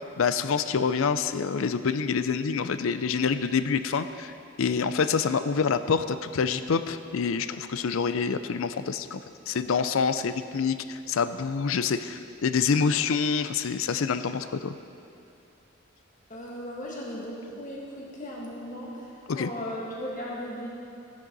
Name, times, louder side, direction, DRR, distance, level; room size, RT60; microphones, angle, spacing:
voice 1, 0.0-4.3 4.6-9.2 9.5-14.8 19.3-19.5, left 5 dB, 80° left, 12 dB, 0.5 m, -26 dB
voice 2, 16.3-20.7, equal, 40° left, -4 dB, 2.0 m, -37 dB
14.5 x 9.7 x 4.1 m, 2.5 s
head